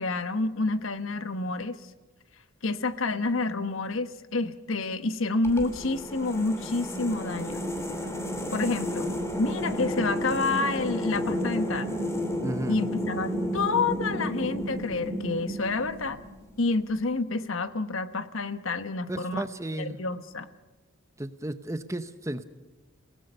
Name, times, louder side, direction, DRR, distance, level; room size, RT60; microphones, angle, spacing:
voice 1, 0.0-1.8 2.6-7.6 8.5-9.1 9.4-11.9 12.7-16.2 16.6-19.4 19.8-20.5, left 3 dB, 70° left, 11 dB, 1.1 m, -28 dB
sound 1, 5.4-16.5, equal, 15° left, 2.4 m, -32 dB
voice 2, 12.4-12.8 19.1-20.0 21.2-22.4, right 1 dB, 15° right, 11 dB, 0.8 m, -33 dB
30.0 x 18.0 x 5.5 m, 1.2 s
head